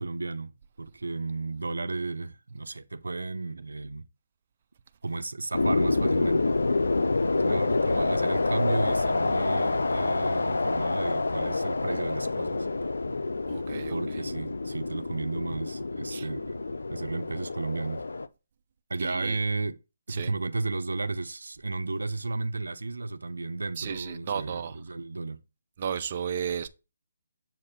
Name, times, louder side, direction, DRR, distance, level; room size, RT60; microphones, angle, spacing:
voice 1, 0.0-4.1 5.0-6.6 7.4-12.7 13.9-18.0 18.9-19.8 20.1-25.4, right 3 dB, 90° right, 0.5 m, -33 dB
sound 1, 5.5-18.3, left 3 dB, 85° left, 0.4 m, -27 dB
voice 2, 13.5-14.2 16.1-16.3 19.0-19.4 20.1-20.3 23.8-24.7 25.8-26.7, right 7 dB, 40° right, 0.5 m, -33 dB
7.2 x 2.6 x 5.5 m
hypercardioid pair, 155°, 0 cm